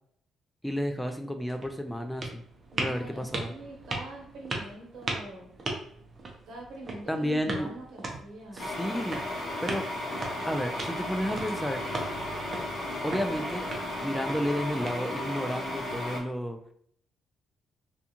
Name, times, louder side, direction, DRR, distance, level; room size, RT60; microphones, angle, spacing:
voice 1, 0.6-2.4 2.8-3.5 7.1-7.7 8.5-9.9 10.4-11.8 13.0-16.6, equal, 5° left, 6 dB, 0.4 m, -32 dB
sound 1, 1.0-15.4, right 2 dB, 40° right, 0.6 m, -39 dB
voice 2, 2.7-5.5 6.5-8.7, right 1 dB, 70° right, -1 dB, 1.0 m, -44 dB
sound 2, 8.6-16.2, left 1 dB, 45° left, 0.8 m, -34 dB
2.4 x 2.3 x 2.8 m, 0.65 s
cardioid pair, 90°, 0 cm